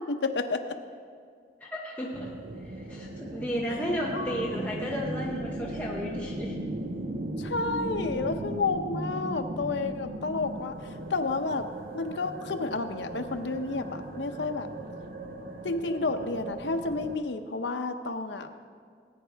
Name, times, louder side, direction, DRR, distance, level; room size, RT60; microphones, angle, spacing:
voice 1, 0.1-0.8 3.7-3.8 4.1-4.6 7.4-10.8 11.1-11.7 11.9-14.7 15.6-18.5, left 3 dB, 85° left, 6 dB, 0.7 m, -31 dB
voice 2, 1.6-2.3 2.6-6.6, equal, 10° left, -4 dB, 0.9 m, -33 dB
sound 1, 2.1-17.1, right 1 dB, 55° right, 0.8 m, -37 dB
18.5 x 9.4 x 3.4 m, 2.1 s
head